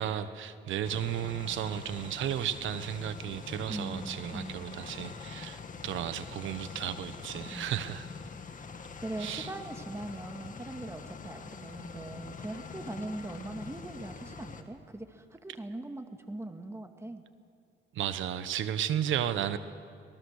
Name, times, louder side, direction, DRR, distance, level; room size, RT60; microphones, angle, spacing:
voice 1, 0.0-8.1 9.2-9.5 17.9-19.6, right 10 dB, 80° right, 12 dB, 1.2 m, -34 dB
sound 1, 0.8-14.6, left 5 dB, 40° left, 1.8 m, -44 dB
voice 2, 3.7-4.8 7.5-7.7 9.0-17.2, right 2 dB, 15° right, 6 dB, 1.9 m, -41 dB
25.5 x 19.0 x 6.6 m, 2.3 s
cardioid pair, 90°, 20 cm